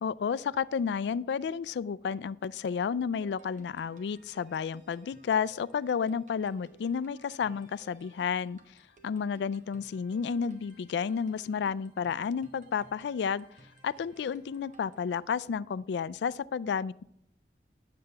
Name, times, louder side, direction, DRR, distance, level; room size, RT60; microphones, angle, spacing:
voice 1, 0.0-8.6 9.0-13.5 13.8-17.0, left 6 dB, 80° left, 20 dB, 0.3 m, -31 dB
sound 1, 3.2-15.5, right 2 dB, 45° right, 1.0 m, -60 dB
9.8 x 7.7 x 3.3 m, 0.73 s
head